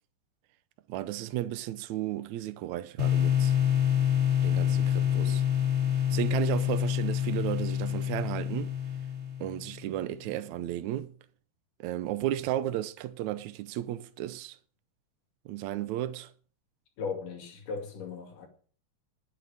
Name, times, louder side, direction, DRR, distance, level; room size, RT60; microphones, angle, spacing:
voice 1, 0.9-3.6 4.4-5.4 6.1-8.8 9.4-11.1 11.8-14.6 15.5-16.3, right 13 dB, 75° right, 2.0 m, -34 dB
sound 1, 3.0-9.8, left 10 dB, 25° right, 2.0 m, -27 dB
voice 2, 4.7-5.4 17.0-18.5, left 5 dB, 75° left, 4.0 m, -38 dB
11.5 x 9.3 x 6.6 m
omnidirectional pair, 3.8 m